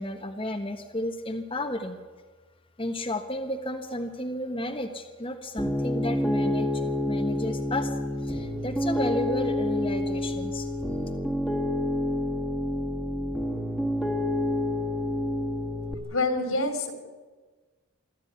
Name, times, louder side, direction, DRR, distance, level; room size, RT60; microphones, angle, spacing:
voice 1, 0.0-2.0 2.8-10.7, left 1 dB, 25° left, 3 dB, 1.3 m, -33 dB
Piano, 5.6-15.9, left 1 dB, 5° right, 2.1 m, -28 dB
voice 2, 16.1-16.9, left 2 dB, 80° left, 7 dB, 3.5 m, -26 dB
24.5 x 13.5 x 9.7 m, 1.4 s
head